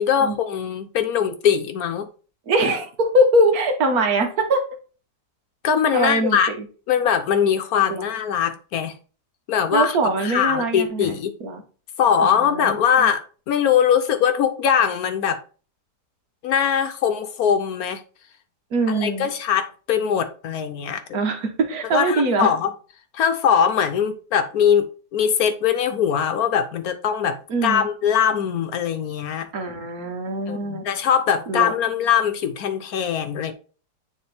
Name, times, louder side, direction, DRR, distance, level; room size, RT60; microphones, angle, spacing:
voice 1, 0.0-2.1 5.6-6.5 6.9-8.9 9.5-9.9 10.2-11.3 12.0-15.4 16.4-18.0 18.9-21.0 21.9-22.7 23.1-29.5 30.5-33.5, left 8 dB, 65° left, 1.1 m, -21 dB
voice 2, 2.5-4.6 5.9-6.7 7.9-8.0 9.7-11.6 12.2-13.1 18.7-19.3 21.1-22.5 27.5-27.9 29.5-30.8 31.5-31.7, right 1 dB, 65° right, 1.5 m, -22 dB
9.4 x 3.4 x 3.3 m
omnidirectional pair, 1.8 m